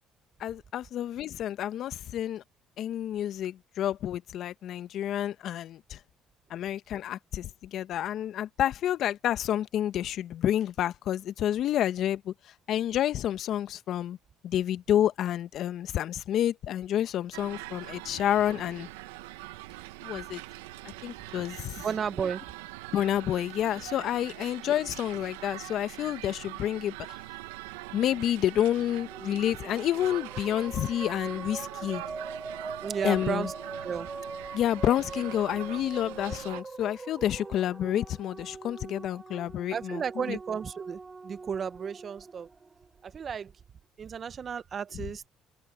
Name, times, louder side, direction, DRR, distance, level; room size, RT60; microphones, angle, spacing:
voice 1, 0.4-2.4 2.8-6.0 6.5-12.3 12.7-14.2 14.4-18.9 20.0-20.4 20.8-21.8 22.9-26.9 27.9-32.0 33.0-33.5 34.5-40.0 40.3-40.4, left 11 dB, 65° left, 1.4 m, -29 dB
sound 1, 17.3-36.6, right 19 dB, 90° right, 1.0 m, -43 dB
voice 2, 21.8-22.4 32.8-34.1 39.7-42.5 43.0-43.5 44.0-45.3, right 7 dB, 45° right, 1.0 m, -33 dB
sound 2, 28.7-43.2, right 4 dB, 30° right, 4.2 m, -42 dB
open air
hypercardioid pair, 65°, 0 cm